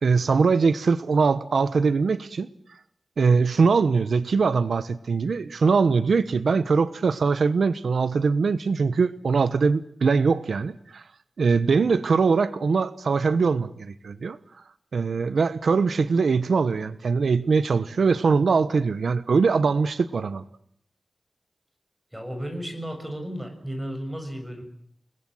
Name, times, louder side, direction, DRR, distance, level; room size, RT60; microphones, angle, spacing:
voice 1, 0.0-2.5 3.2-11.0 11.4-14.4 14.9-20.4, right 5 dB, 80° right, 13 dB, 1.0 m, -22 dB
voice 2, 22.1-24.6, equal, 5° right, 6 dB, 6.7 m, -34 dB
29.5 x 20.0 x 7.9 m, 0.64 s
wide cardioid pair, 115°, 0 cm